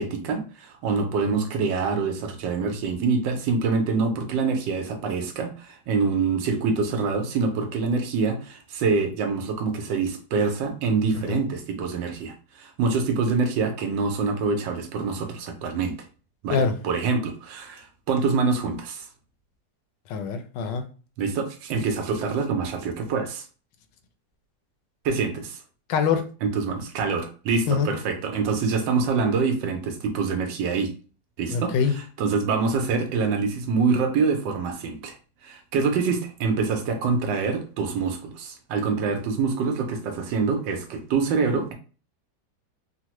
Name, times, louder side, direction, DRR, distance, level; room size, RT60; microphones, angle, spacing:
voice 1, 0.0-15.9 16.4-19.1 21.2-23.5 25.0-25.6 26.4-30.9 31.4-35.2 35.4-41.7, right 4 dB, 85° right, 5 dB, 1.4 m, -25 dB
voice 2, 20.1-20.8 25.9-26.2 27.7-27.9 31.5-31.9, left 6 dB, 80° left, 8 dB, 1.2 m, -24 dB
3.7 x 2.1 x 2.9 m, 0.37 s
omnidirectional pair, 1.9 m